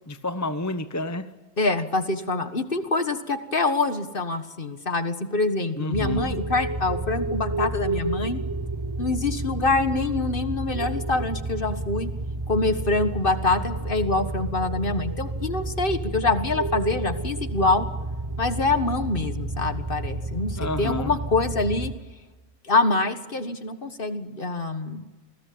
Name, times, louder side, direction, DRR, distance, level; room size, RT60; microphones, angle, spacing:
voice 1, 0.1-1.3 5.8-6.4 20.6-21.1, left 2 dB, 15° left, 10 dB, 0.8 m, -30 dB
voice 2, 1.6-8.4 9.0-12.1 12.5-17.9 18.4-21.9 22.6-25.1, left 3 dB, 40° left, 9 dB, 1.7 m, -25 dB
sound 1, 5.9-21.9, right 2 dB, 20° right, 1.0 m, -31 dB
28.5 x 20.0 x 8.7 m, 1.2 s
omnidirectional pair, 1.4 m